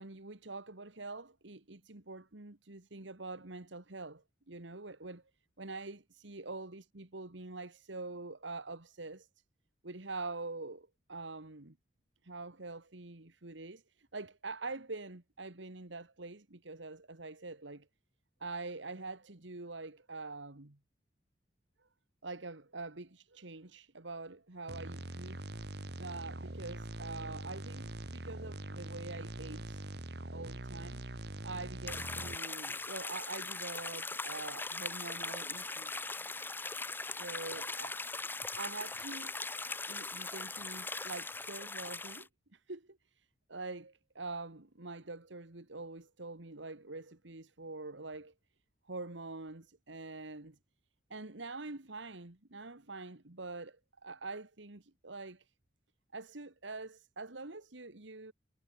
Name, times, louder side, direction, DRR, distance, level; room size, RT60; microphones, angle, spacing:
voice 1, 0.0-5.2 5.6-9.3 9.8-11.8 12.2-17.9 18.4-20.8 22.2-25.4 26.0-29.9 30.3-31.0 31.4-36.0 37.1-38.0 38.6-39.3 39.9-48.3 48.9-50.6 51.1-55.5 56.1-58.3, right 3 dB, 85° right, 2.0 m, -45 dB
sound 1, 24.7-32.4, right 1 dB, 60° right, 2.0 m, -43 dB
sound 2, 31.9-42.2, left 3 dB, 10° left, 0.9 m, -40 dB
head